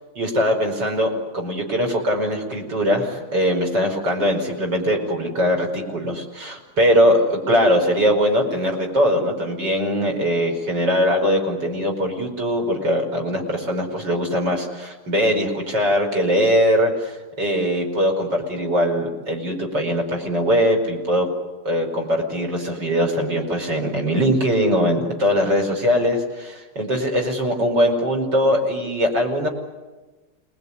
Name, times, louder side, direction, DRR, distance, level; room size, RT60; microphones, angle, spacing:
voice 1, 0.2-21.3 21.6-29.5, equal, 70° right, 1 dB, 5.8 m, -21 dB
28.0 x 20.5 x 9.9 m, 1.2 s
omnidirectional pair, 2.0 m